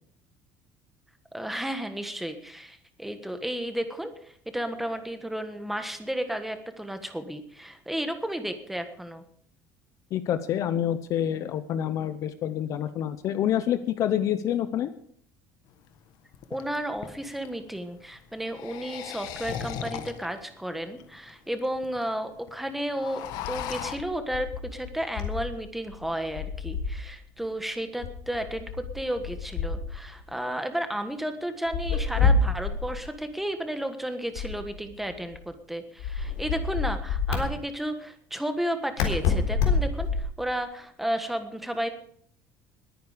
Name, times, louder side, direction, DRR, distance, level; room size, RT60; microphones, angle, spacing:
voice 1, 1.3-9.2 16.5-28.7 28.9-41.9, right 1 dB, 5° right, 7 dB, 1.4 m, -33 dB
voice 2, 10.1-14.9, left 10 dB, 45° left, 12 dB, 0.8 m, -27 dB
sound 1, 15.7-15.8 16.3-17.5 18.4-20.4 21.0-21.1 21.3-21.4 21.6-22.0 22.4-22.5 22.8-24.0, left 9 dB, 60° left, 1.4 m, -37 dB
sound 2, 23.3-25.6 25.9-27.1 28.0-30.2 31.7-33.0 34.4-35.4 36.0-37.4 39.0-40.4, left 4 dB, 90° left, 3.9 m, -28 dB
21.0 x 9.6 x 5.1 m, 0.62 s
cardioid pair, 170°, 8 cm